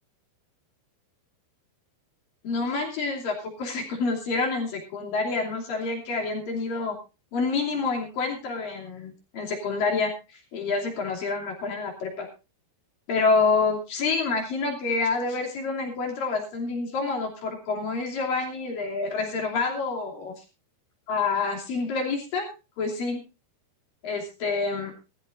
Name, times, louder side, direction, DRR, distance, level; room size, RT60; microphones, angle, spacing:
voice 1, 2.4-7.0 7.3-12.3 13.1-20.4 21.1-22.5 22.8-23.2 24.0-24.9, left 4 dB, 55° left, 1 dB, 4.3 m, -28 dB
19.5 x 14.0 x 2.6 m, 0.30 s
omnidirectional pair, 4.9 m